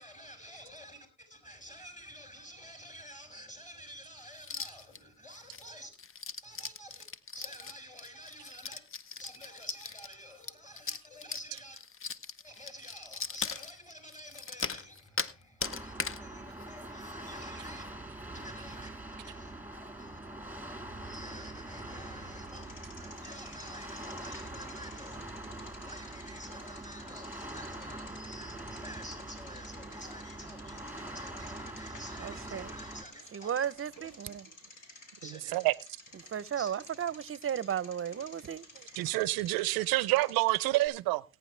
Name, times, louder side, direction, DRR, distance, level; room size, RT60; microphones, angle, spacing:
voice 1, 0.0-5.9 6.4-11.8 12.3-17.9 18.3-19.5 19.9-33.5 35.2-35.6 36.5-37.2 39.7-39.8, equal, 20° left, 6.3 m, -50 dB
sound 1, 4.4-5.0 5.3-15.3 15.6-16.2 16.6-16.7 17.0-17.3 17.6-17.7 18.2-18.4, left 5 dB, 40° left, 0.9 m, -39 dB
sound 2, 15.6-33.0, right 1 dB, 5° right, 1.9 m, -44 dB
Bicycle, 22.5-40.9, left 2 dB, 60° left, 4.2 m, -54 dB
voice 2, 32.2-32.7 33.3-34.5 36.1-38.7, right 9 dB, 40° right, 0.7 m, -35 dB
voice 3, 39.0-41.2, right 19 dB, 90° right, 0.6 m, -27 dB
18.5 x 9.4 x 3.2 m
supercardioid pair, 65°, 35 cm